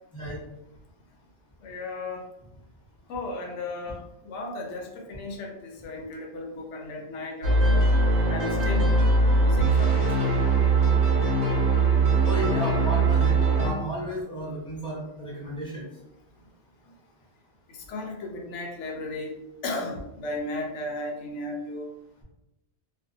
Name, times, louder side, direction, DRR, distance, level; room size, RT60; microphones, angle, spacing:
voice 1, 1.6-2.2 3.1-4.0 4.3-7.9 8.3-8.8 9.4-10.1 17.9-19.3 19.6-21.9, left 2 dB, 90° left, 2 dB, 0.9 m, -35 dB
sound 1, 7.4-13.7, right 3 dB, 75° right, 1.1 m, -21 dB
voice 2, 12.2-15.9, right 1 dB, 5° left, -5 dB, 0.8 m, -33 dB
2.5 x 2.2 x 2.6 m, 0.90 s
omnidirectional pair, 1.2 m